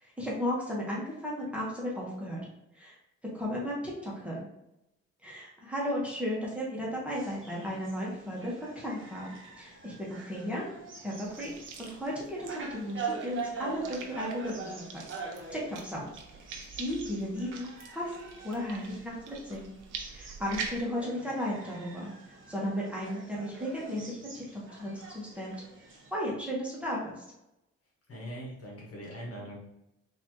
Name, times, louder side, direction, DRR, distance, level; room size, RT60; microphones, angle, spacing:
voice 1, 0.0-2.4 2.7-3.0 3.3-4.4 5.2-9.3 9.6-10.7 11.0-11.5 11.8-14.7 15.3-16.1 16.5-19.7 20.1-25.5 26.1-27.2, equal, 5° right, -5 dB, 1.3 m, -35 dB
sound 1, 7.1-26.1, right 4 dB, 40° right, 1.1 m, -44 dB
sound 2, 11.2-20.8, right 5 dB, 85° right, 0.7 m, -45 dB
voice 2, 28.1-29.7, equal, 50° left, -2 dB, 1.4 m, -41 dB
4.1 x 2.7 x 3.0 m, 0.88 s
cardioid pair, 90°, 30 cm